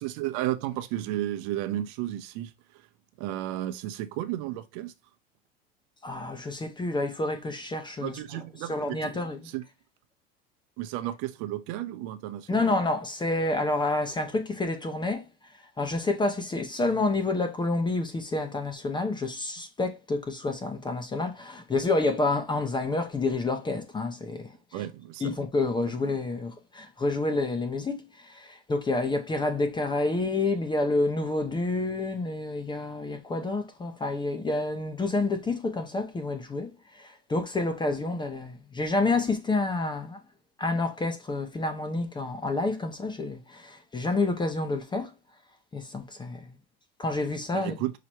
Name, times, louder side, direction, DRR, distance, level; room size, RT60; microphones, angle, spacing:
voice 1, 0.0-2.9 3.2-4.9 8.0-9.2 9.5-9.6 10.8-12.7 24.7-25.3 47.5-47.9, right 14 dB, 65° right, 0.8 m, -33 dB
voice 2, 6.0-8.2 8.6-9.4 12.5-15.3 15.8-24.8 25.2-40.2 40.6-45.1 45.7-46.5 47.0-47.7, left 2 dB, 15° left, 0.6 m, -29 dB
5.8 x 3.0 x 2.9 m
supercardioid pair, 110°, 29 cm